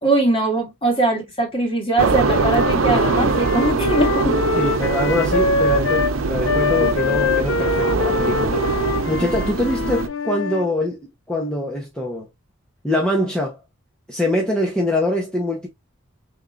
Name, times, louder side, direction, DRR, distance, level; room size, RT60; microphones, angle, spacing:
voice 1, 0.0-4.4, right 2 dB, 25° left, 1.8 m, -21 dB
sound 1, 2.0-10.1, right 4 dB, 90° right, 0.7 m, -22 dB
Wind instrument woodwind instrument, 2.2-6.2 6.4-10.7, left 4 dB, 65° left, 0.6 m, -24 dB
voice 2, 2.8-3.2 4.6-12.3 12.8-13.6 14.1-15.7, left 1 dB, 5° left, 0.9 m, -24 dB
5.4 x 3.5 x 2.4 m
head